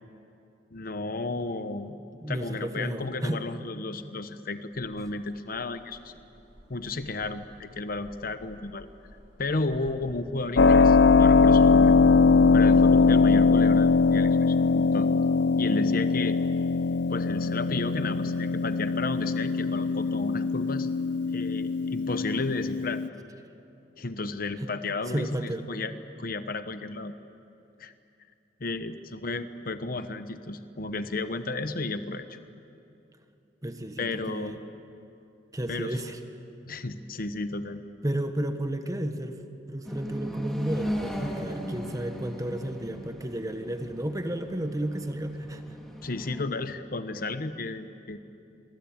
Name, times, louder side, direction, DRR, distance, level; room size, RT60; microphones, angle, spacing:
voice 1, 0.7-2.0 2.3-6.1 6.7-8.9 9.4-11.9 12.5-15.1 15.6-16.4 17.1-20.9 21.3-23.0 24.0-25.9 26.2-27.1 27.8-27.9 28.6-32.4 34.0-34.6 35.7-36.0 36.7-37.8 46.0-48.2, left 3 dB, 50° left, 10 dB, 1.0 m, -33 dB
voice 2, 2.2-3.4 23.4-23.5 24.6-24.7 25.1-25.7 33.6-34.6 35.5-36.2 38.0-39.4 39.7-45.8, right 1 dB, 20° right, 7 dB, 1.3 m, -32 dB
sound 1, 4.7-13.6, equal, 85° right, 6.8 m, -49 dB
Keyboard (musical), 10.6-23.1, left 4 dB, 70° left, 0.5 m, -21 dB
sound 2, 39.8-46.4, equal, ahead, 2.9 m, -37 dB
28.0 x 23.0 x 8.8 m, 2.7 s
head